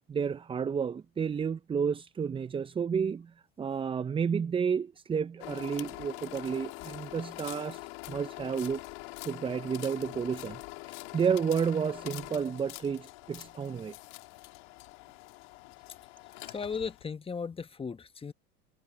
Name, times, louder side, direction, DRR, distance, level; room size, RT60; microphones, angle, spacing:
voice 1, 0.0-3.3 3.6-7.8 8.1-8.8 9.2-10.6 10.8-13.9 16.4-16.5, right 6 dB, 15° right, 0.5 m, -31 dB
sound 1, 5.4-17.0, left 28 dB, 70° left, 1.9 m, -44 dB
voice 2, 16.5-18.3, left 5 dB, 15° left, 1.0 m, -36 dB
hypercardioid pair, 90°, 32 cm